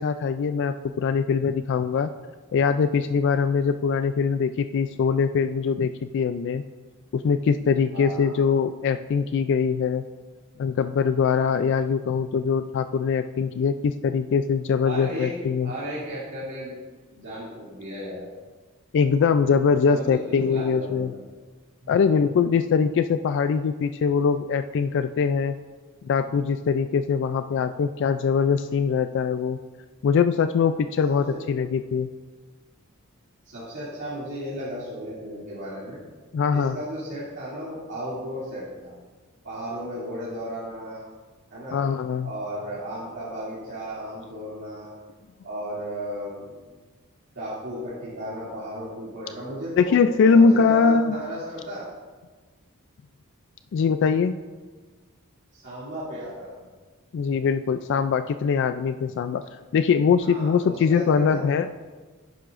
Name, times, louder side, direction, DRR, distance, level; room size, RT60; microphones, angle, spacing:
voice 1, 0.0-2.1 2.5-6.6 7.1-10.0 10.6-15.7 18.9-21.1 21.9-25.5 26.0-29.6 30.0-32.1 36.3-36.8 41.7-42.3 49.8-51.2 53.7-54.4 57.1-59.4 59.7-61.7, left 5 dB, 55° left, 10 dB, 0.3 m, -22 dB
voice 2, 7.9-8.5 14.8-15.3 15.6-16.7 17.1-18.2 19.9-21.2 21.8-22.1 31.0-31.4 33.4-36.0 36.5-38.9 39.4-41.0 41.5-41.8 42.2-44.9 45.4-46.5 47.3-49.9 50.3-51.8 55.5-56.5 60.2-61.4, equal, 55° right, -10 dB, 2.6 m, -35 dB
11.0 x 10.5 x 2.5 m, 1.4 s
head